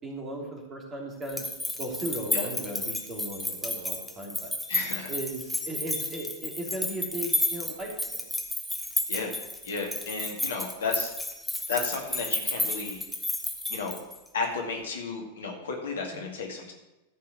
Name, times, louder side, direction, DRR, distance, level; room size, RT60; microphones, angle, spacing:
voice 1, 0.0-1.5 1.8-4.5 5.1-8.3 16.1-16.3, right 1 dB, 20° right, -1 dB, 3.0 m, -36 dB
sound 1, 1.2-14.3, left 1 dB, ahead, 1.4 m, -32 dB
voice 2, 4.7-5.1 9.1-9.4 9.6-11.1 11.7-13.0 13.7-14.0 14.3-16.7, left 4 dB, 65° left, 1 dB, 2.0 m, -33 dB
14.0 x 5.7 x 6.3 m, 1.0 s
figure-of-eight pair, 90°, 0 cm